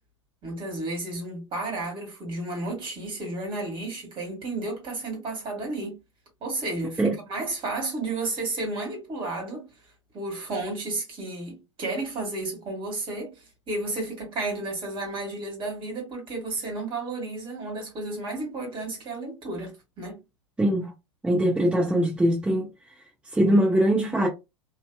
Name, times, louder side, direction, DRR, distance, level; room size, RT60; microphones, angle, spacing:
voice 1, 0.4-6.0 6.4-9.7 10.1-20.2, right 2 dB, 30° right, 1.5 m, -32 dB
voice 2, 20.6-20.9 21.2-22.7 23.3-24.3, right 1 dB, 5° right, 0.6 m, -22 dB
2.7 x 2.2 x 2.2 m
figure-of-eight pair, 90°, 16 cm